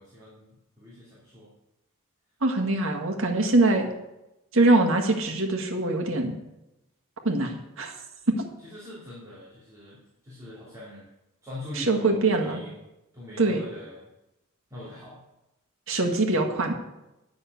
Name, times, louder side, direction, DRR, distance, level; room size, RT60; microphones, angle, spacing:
voice 1, 0.0-1.5 8.6-10.0 10.2-11.1 11.4-12.8 13.1-14.1 14.7-15.2, left 1 dB, 15° right, -9 dB, 3.0 m, -41 dB
voice 2, 2.4-3.9 4.5-6.3 7.2-7.9 8.3-8.4 11.8-12.6 13.4-13.6 15.9-16.7, right 2 dB, 65° right, 4 dB, 1.8 m, -23 dB
10.0 x 6.7 x 8.2 m, 0.93 s
head